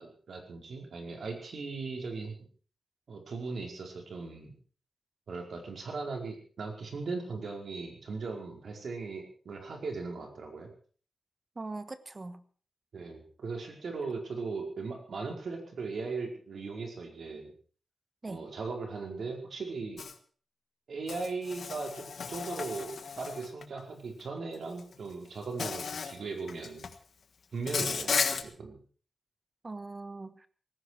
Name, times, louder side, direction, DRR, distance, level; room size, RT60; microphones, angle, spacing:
voice 1, 0.0-2.3 3.1-4.5 5.3-10.7 12.9-17.5 18.3-20.1 20.9-26.9 27.5-28.8, right 4 dB, 70° right, 2 dB, 4.7 m, -38 dB
voice 2, 11.5-12.4 18.2-18.4 29.6-30.5, right 3 dB, 30° right, 12 dB, 1.3 m, -41 dB
Insect, 20.0-20.1 21.1-23.6 24.8-24.9 25.6-26.2 26.5-27.0 27.7-28.4, left 5 dB, 65° left, 1.5 m, -34 dB
18.5 x 15.5 x 4.8 m, 0.41 s
wide cardioid pair, 160°, 0 cm